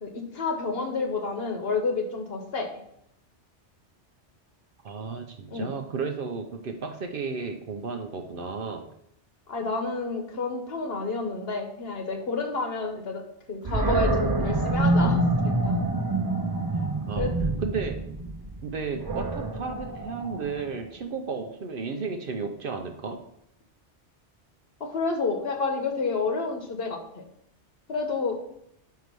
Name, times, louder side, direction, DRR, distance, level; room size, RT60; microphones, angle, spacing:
voice 1, 0.0-2.7 5.5-5.7 9.5-13.2 13.5-15.8 17.1-17.3 24.8-27.2 27.9-28.4, left 4 dB, 60° left, 3 dB, 1.2 m, -30 dB
voice 2, 4.8-8.9 17.1-17.3 17.6-18.0 18.6-23.2, right 5 dB, 55° right, 5 dB, 0.7 m, -33 dB
Animal, 13.6-20.8, right 2 dB, 35° right, 0.4 m, -26 dB
4.7 x 4.6 x 5.3 m, 0.75 s
omnidirectional pair, 1.2 m